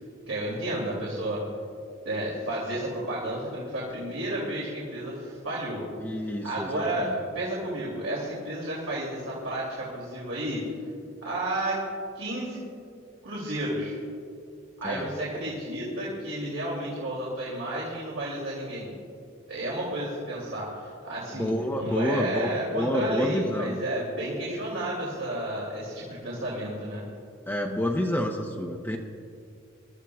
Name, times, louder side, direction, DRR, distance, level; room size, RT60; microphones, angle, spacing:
voice 1, 0.3-1.4 2.0-5.8 6.4-10.6 11.2-11.8 12.1-12.6 13.2-14.0 14.8-19.0 19.5-21.5 21.8-27.0, right 1 dB, 80° right, -6 dB, 2.8 m, -32 dB
voice 2, 6.0-7.1 14.8-15.1 21.3-23.8 27.5-29.0, equal, 10° left, 0 dB, 0.7 m, -29 dB
24.0 x 13.0 x 2.4 m, 2.4 s
head